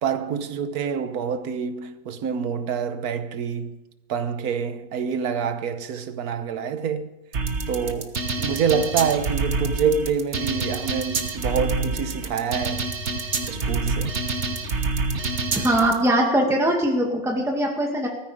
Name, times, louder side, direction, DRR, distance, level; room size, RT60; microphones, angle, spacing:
voice 1, 0.0-3.8 4.1-7.1 7.7-12.9 13.5-14.2, right 6 dB, 80° right, 1.5 m, -26 dB
sound 1, 7.3-15.9, right 3 dB, 50° right, 1.5 m, -27 dB
voice 2, 15.6-18.1, right 1 dB, ahead, 2.0 m, -21 dB
17.5 x 14.5 x 5.0 m
omnidirectional pair, 1.6 m